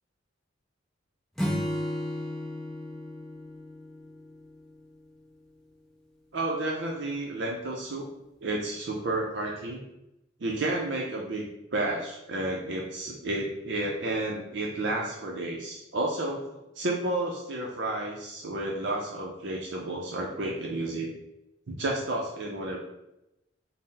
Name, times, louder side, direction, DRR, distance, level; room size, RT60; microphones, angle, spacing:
Acoustic guitar / Strum, 1.4-4.9, left 1 dB, 5° left, 0.5 m, -34 dB
voice 1, 6.3-8.0 8.4-9.8 10.4-21.1 21.7-22.8, right 2 dB, 60° right, -1 dB, 0.5 m, -31 dB
3.9 x 2.0 x 4.0 m, 0.89 s
head